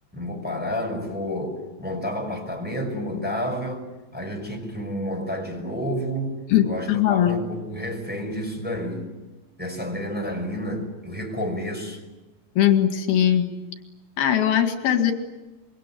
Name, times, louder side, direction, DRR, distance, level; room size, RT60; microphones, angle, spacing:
voice 1, 0.1-3.8 4.1-6.3 6.6-9.1 9.6-12.0, equal, ahead, 2 dB, 5.6 m, -30 dB
voice 2, 6.5-7.4 12.6-13.5 14.2-15.1, left 10 dB, 85° left, 6 dB, 3.9 m, -20 dB
26.0 x 23.0 x 9.3 m, 1.1 s
omnidirectional pair, 4.2 m